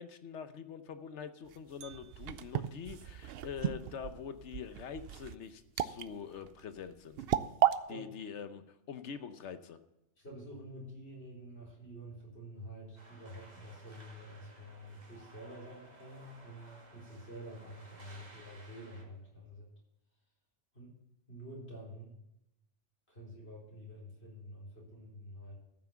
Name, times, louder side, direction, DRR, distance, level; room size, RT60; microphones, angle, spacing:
voice 1, 0.0-7.2 7.9-9.8, left 7 dB, 80° left, 10 dB, 1.1 m, -44 dB
sound 1, 1.5-7.8, right 10 dB, 65° right, 0.7 m, -34 dB
voice 2, 10.2-19.7 20.7-21.0 21.3-22.2 23.1-25.6, equal, 65° left, -4 dB, 4.4 m, -48 dB
sound 2, 13.0-19.0, right 2 dB, 35° right, 2.3 m, -57 dB
13.5 x 6.0 x 6.9 m, 0.88 s
omnidirectional pair, 1.2 m